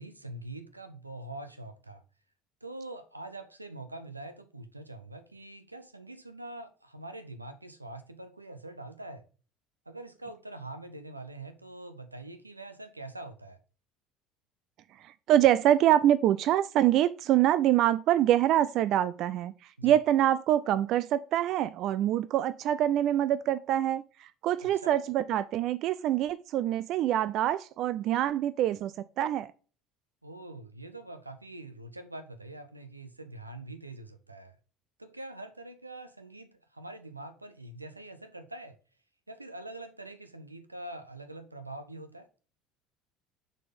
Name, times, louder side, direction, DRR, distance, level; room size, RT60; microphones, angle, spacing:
voice 1, 0.0-2.0 2.6-9.2 9.9-13.6 19.8-20.0 24.6-24.9 30.2-34.6 35.0-38.8 39.3-42.3, right 2 dB, 90° right, 0.7 m, -44 dB
voice 2, 15.0-29.5, right 12 dB, 50° right, 0.3 m, -25 dB
6.3 x 4.3 x 5.1 m
figure-of-eight pair, 60°, 0 cm